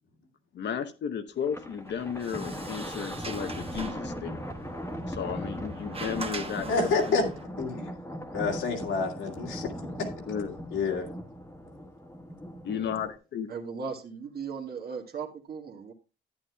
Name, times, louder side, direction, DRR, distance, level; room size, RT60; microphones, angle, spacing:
voice 1, 0.5-4.4 5.1-7.3 10.3-10.6 12.6-13.5, left 7 dB, 60° left, 7 dB, 0.9 m, -34 dB
Thunder, 1.4-13.2, equal, 10° left, 1.3 m, -39 dB
Sliding door, 1.9-7.4, right 3 dB, 30° right, 1.1 m, -42 dB
voice 2, 6.7-7.2 7.6-7.9 8.3-9.7 10.7-11.1, left 4 dB, 80° left, 1 dB, 2.2 m, -28 dB
voice 3, 13.5-15.9, right 5 dB, 50° right, 3 dB, 1.8 m, -37 dB
11.5 x 9.5 x 2.3 m, 0.31 s
cardioid pair, 90°, 20 cm